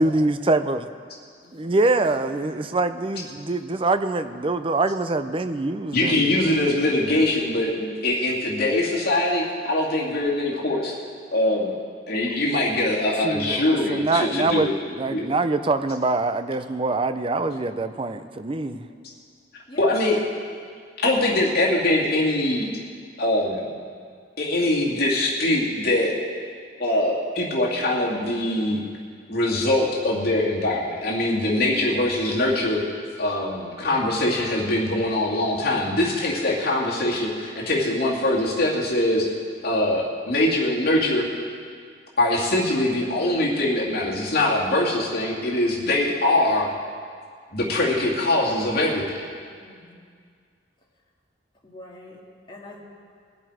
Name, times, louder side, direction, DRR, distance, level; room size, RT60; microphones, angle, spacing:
voice 1, 0.0-0.9 1.5-6.5 13.2-18.9, right 2 dB, 30° right, 10 dB, 0.5 m, -24 dB
voice 2, 2.3-2.7 18.7-19.0 19.7-20.1 49.6-50.1 51.6-52.2 52.5-52.8, left 1 dB, 25° left, -4 dB, 2.1 m, -42 dB
voice 3, 5.9-10.9 11.3-11.7 12.1-14.7 15.1-15.3 19.7-20.2 21.0-22.7 23.2-23.7 24.4-26.1 26.8-28.8 29.3-32.8 33.2-39.3 39.6-41.2 42.2-46.7 47.5-49.0, left 1 dB, 55° left, -4 dB, 2.4 m, -22 dB
21.5 x 7.7 x 4.9 m, 2.1 s
head